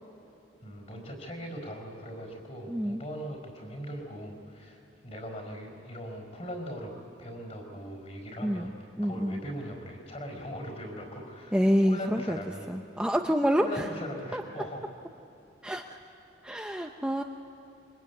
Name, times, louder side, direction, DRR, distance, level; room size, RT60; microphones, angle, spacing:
voice 1, 0.6-6.9 7.2-8.7 9.0-12.7 13.6-14.9, equal, 35° left, 3 dB, 4.7 m, -40 dB
voice 2, 2.7-3.0 8.4-9.4 11.5-12.4 12.7-13.9 14.3-14.4 15.6-16.0 16.4-17.2, equal, 5° right, 3 dB, 0.7 m, -28 dB
25.5 x 24.0 x 9.5 m, 2.8 s
head